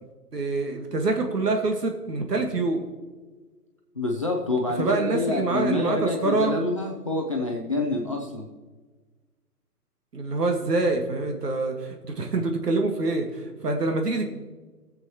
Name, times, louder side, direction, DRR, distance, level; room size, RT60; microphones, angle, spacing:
voice 1, 0.3-2.8 4.8-6.5 10.1-14.3, right 3 dB, 80° right, 3 dB, 1.7 m, -26 dB
voice 2, 4.0-8.5, left 2 dB, 20° left, 0 dB, 0.5 m, -27 dB
20.0 x 7.9 x 2.9 m, 1.3 s
hypercardioid pair, 150°, 47 cm